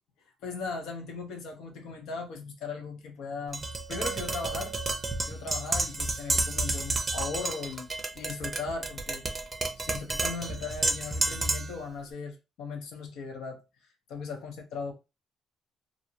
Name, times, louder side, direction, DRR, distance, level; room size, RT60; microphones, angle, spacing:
voice 1, 0.4-3.6 3.9-4.7 5.3-7.9 8.1-9.2 9.8-13.6 14.1-14.9, left 4 dB, 85° left, 0.8 m, -38 dB
Tap, 3.5-11.8, right 2 dB, 25° right, 0.5 m, -31 dB
2.6 x 2.0 x 2.7 m
cardioid pair, 90°, 0 cm